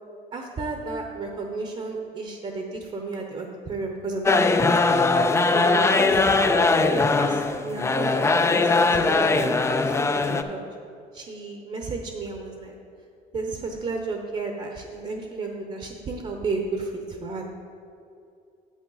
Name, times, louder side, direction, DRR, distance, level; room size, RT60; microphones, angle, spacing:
voice 1, 0.3-5.0 5.5-6.2 6.9-10.6 11.1-12.8 13.3-17.4, right 3 dB, 35° right, 3 dB, 0.9 m, -33 dB
sound 1, 4.2-10.4, left 3 dB, 15° left, 0.4 m, -20 dB
8.2 x 8.0 x 4.0 m, 2.5 s
cardioid pair, 110°, 17 cm